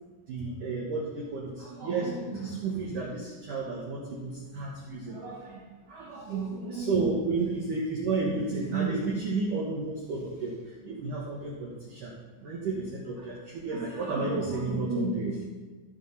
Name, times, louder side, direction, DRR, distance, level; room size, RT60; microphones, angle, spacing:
voice 1, 0.3-5.6 5.9-12.1 12.4-15.4, right 3 dB, 85° right, -4 dB, 1.8 m, -32 dB
14.5 x 5.3 x 5.5 m, 1.3 s
omnidirectional pair, 5.8 m